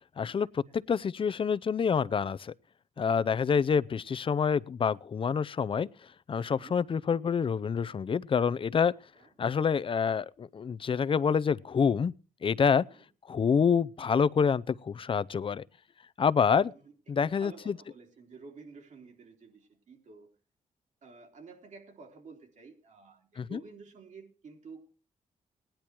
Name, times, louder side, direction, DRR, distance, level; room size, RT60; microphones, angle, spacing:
voice 1, 0.2-2.5 3.0-5.9 6.3-8.9 9.4-12.1 12.4-12.9 13.3-15.6 16.2-16.7 17.1-17.8 23.4-23.6, left 6 dB, 40° left, 0.6 m, -27 dB
voice 2, 3.0-3.3 6.4-6.8 9.2-9.3 12.8-13.0 16.6-16.9 17.2-20.3 21.0-24.9, right 4 dB, 65° right, 3.5 m, -51 dB
17.5 x 10.5 x 4.6 m
cardioid pair, 75°, 13 cm